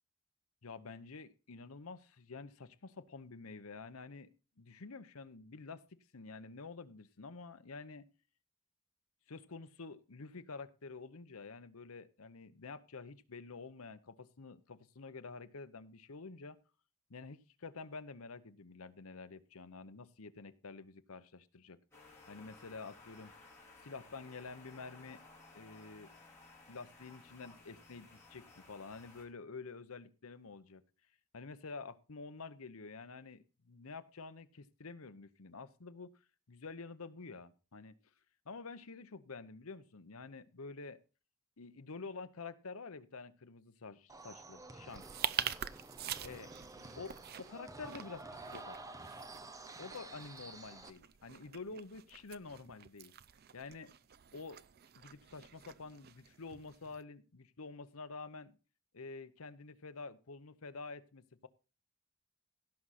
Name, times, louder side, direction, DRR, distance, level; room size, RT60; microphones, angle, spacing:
voice 1, 0.6-4.3 4.6-8.0 9.3-16.6 17.1-21.8 22.3-23.3 23.8-25.2 25.5-26.1 26.7-30.8 31.3-36.1 36.5-38.0 38.4-41.0 41.6-45.1 46.2-46.5 46.9-48.8 49.8-53.1 53.5-53.9 54.3-54.6 54.9-58.6 58.9-61.5, left 4 dB, 80° left, 12 dB, 0.9 m, -49 dB
sound 1, 21.9-29.2, left 3 dB, 10° left, 4.8 m, -58 dB
sound 2, 44.1-50.9, right 2 dB, 15° right, 0.8 m, -50 dB
sound 3, 44.9-57.0, right 9 dB, 45° right, 0.5 m, -45 dB
16.5 x 6.2 x 4.2 m, 0.34 s
head